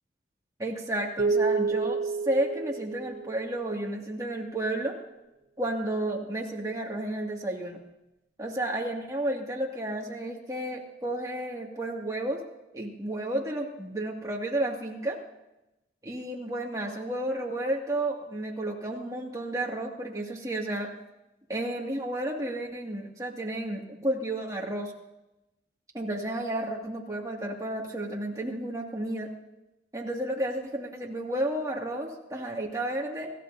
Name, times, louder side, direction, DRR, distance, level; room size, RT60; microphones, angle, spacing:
voice 1, 0.6-4.9 5.6-7.8 8.4-12.4 12.7-15.2 16.0-20.9 21.5-24.9 25.9-29.3 29.9-33.3, right 1 dB, 20° right, -2 dB, 2.2 m, -32 dB
sound 1, 1.2-3.8, right 4 dB, 50° right, 0.7 m, -29 dB
26.0 x 14.0 x 2.7 m, 0.93 s
head